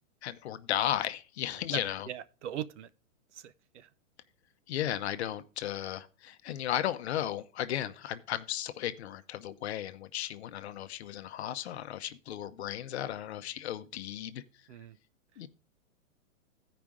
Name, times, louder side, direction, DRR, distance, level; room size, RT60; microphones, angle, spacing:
voice 1, 0.2-2.1 4.7-14.4 15.4-15.5, left 11 dB, 55° left, 0.8 m, -35 dB
voice 2, 1.7-2.9 3.3-3.9 14.7-15.0, right 11 dB, 65° right, 0.7 m, -41 dB
15.0 x 5.1 x 3.6 m
hypercardioid pair, 165°, 39 cm